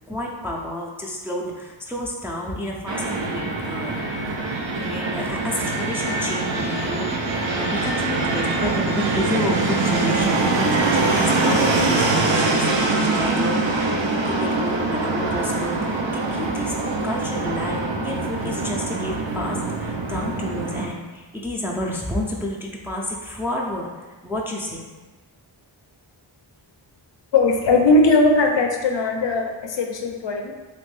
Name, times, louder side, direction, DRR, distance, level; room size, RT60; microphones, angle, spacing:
voice 1, 0.0-4.0 4.8-16.7 17.0-23.9 24.2-24.8, left 1 dB, 5° right, -2 dB, 0.4 m, -30 dB
Fixed-wing aircraft airplane, 2.9-20.9, right 3 dB, 65° right, 0.6 m, -23 dB
voice 2, 27.3-30.5, left 2 dB, 65° left, 3 dB, 0.5 m, -19 dB
3.1 x 2.5 x 3.2 m, 1.2 s
wide cardioid pair, 55°, 47 cm